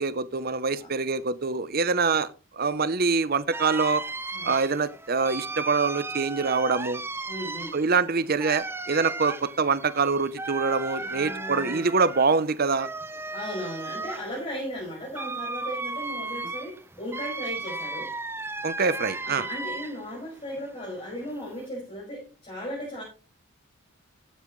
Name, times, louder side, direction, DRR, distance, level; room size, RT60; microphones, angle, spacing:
voice 1, 0.0-2.3 2.5-4.0 4.4-7.0 7.7-12.9 18.6-19.5, right 4 dB, 45° right, 0.8 m, -25 dB
sound 1, 3.5-20.2 20.5-21.7, right 3 dB, 10° right, 0.6 m, -35 dB
voice 2, 7.3-7.8 11.0-11.9 13.3-18.1 19.2-23.0, equal, 30° left, 5.8 m, -36 dB
15.0 x 8.9 x 3.2 m
head